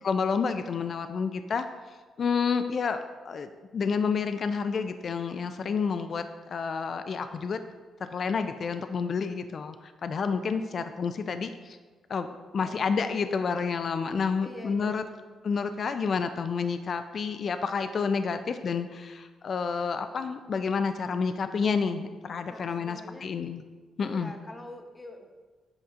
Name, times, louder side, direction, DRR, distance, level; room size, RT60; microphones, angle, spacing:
voice 1, 0.0-1.7 2.2-7.6 8.0-11.8 12.1-12.3 12.5-15.0 15.4-23.6 24.0-24.3, left 5 dB, 55° left, 9 dB, 0.3 m, -29 dB
voice 2, 12.6-13.0 14.4-15.3 22.5-23.3 24.0-25.4, left 1 dB, 25° left, 4 dB, 0.9 m, -45 dB
7.7 x 5.4 x 2.5 m, 1.4 s
supercardioid pair, 65°, 0 cm